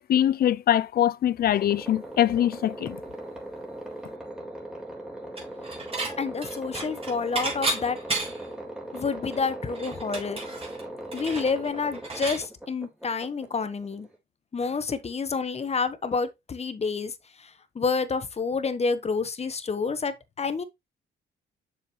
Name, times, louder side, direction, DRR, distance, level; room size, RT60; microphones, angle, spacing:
voice 1, 0.0-3.0, left 11 dB, 50° left, 0.5 m, -23 dB
sound 1, 1.5-14.2, right 1 dB, 5° right, 3.8 m, -39 dB
Dishes pots and pans / Chink clink, 5.4-6.1 6.4-8.5 9.0-9.1 9.3-12.4, right 2 dB, 30° right, 4.1 m, -32 dB
voice 2, 6.2-8.0 8.9-10.4 11.1-14.1 14.5-17.5 17.7-20.6, left 5 dB, 30° left, 1.2 m, -29 dB
7.0 x 6.9 x 3.1 m
cardioid pair, 90°, 20 cm